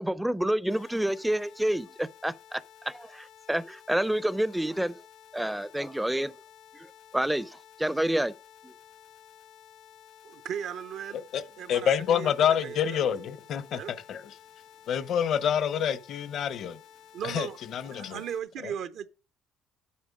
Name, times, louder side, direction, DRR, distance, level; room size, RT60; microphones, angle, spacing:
voice 1, 0.0-5.0 5.3-6.3 6.7-6.9 7.1-8.3 8.6-8.7, right 1 dB, 5° right, 0.4 m, -29 dB
sound 1, 0.7-18.4, left 10 dB, 85° left, 1.6 m, -54 dB
voice 2, 10.2-11.2 11.6-13.1 13.7-13.9 17.1-17.6 17.8-19.1, right 8 dB, 75° right, 0.7 m, -37 dB
voice 3, 11.7-14.2 14.9-16.8 17.2-18.2 18.6-18.7, left 8 dB, 65° left, 0.8 m, -27 dB
8.5 x 6.6 x 5.3 m
cardioid pair, 105°, 0 cm